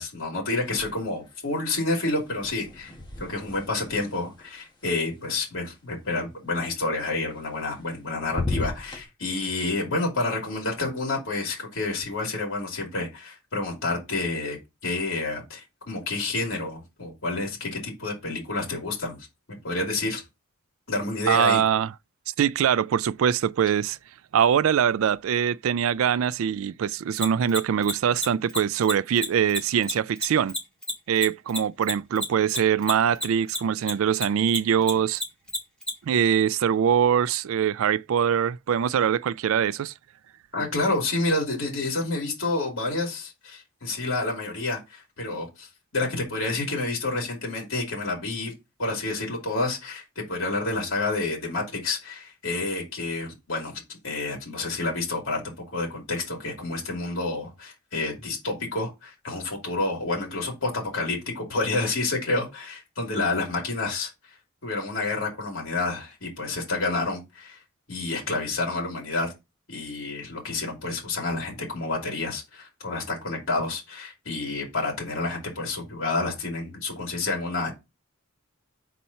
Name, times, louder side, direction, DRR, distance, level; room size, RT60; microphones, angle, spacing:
voice 1, 0.0-2.9 3.2-14.6 14.8-19.2 19.5-20.2 20.9-21.6 40.5-45.7 45.9-48.5 48.8-55.4 55.7-64.1 64.6-67.6 67.9-69.3 69.7-77.7, left 2 dB, 65° left, 2.7 m, -29 dB
sound 1, 0.6-1.4 1.6-5.7 7.4-8.0 8.2-9.0, left 2 dB, 20° left, 1.3 m, -36 dB
voice 2, 21.3-21.9 22.4-24.0 24.3-30.6 31.1-35.2 36.1-39.9, right 8 dB, 65° right, 0.3 m, -23 dB
Mechanisms, 27.2-33.9 34.2-35.9, equal, 5° left, 1.9 m, -29 dB
4.3 x 4.2 x 5.6 m
head